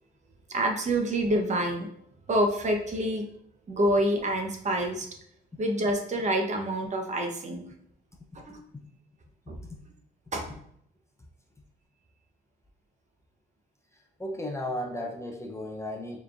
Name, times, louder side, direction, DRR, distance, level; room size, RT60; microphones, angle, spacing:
voice 1, 0.5-1.9 2.3-3.2 3.7-5.1 5.6-7.7 8.5-8.6 9.5-9.6 10.3-10.6, right 1 dB, 35° right, 3 dB, 0.8 m, -27 dB
voice 2, 14.2-16.2, left 1 dB, 15° left, 1 dB, 0.5 m, -35 dB
4.5 x 3.2 x 2.4 m, 0.68 s
cardioid pair, 90°, 20 cm